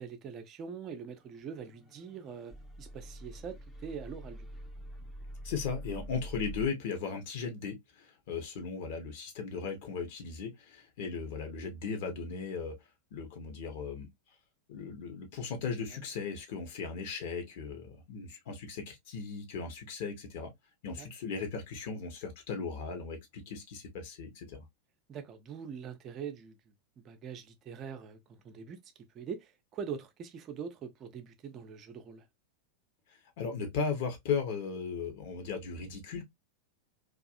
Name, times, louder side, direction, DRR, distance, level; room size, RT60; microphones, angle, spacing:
voice 1, 0.0-4.5 15.9-16.0 20.9-21.1 25.1-28.8 29.1-32.3, right 6 dB, 30° right, 0.6 m, -43 dB
sound 1, 1.4-6.7, equal, 10° left, 0.6 m, -45 dB
voice 2, 5.4-12.7 13.1-14.1 14.7-20.5 20.8-24.7 33.4-36.2, left 5 dB, 50° left, 1.0 m, -37 dB
2.7 x 2.4 x 2.4 m
figure-of-eight pair, 90°, 0 cm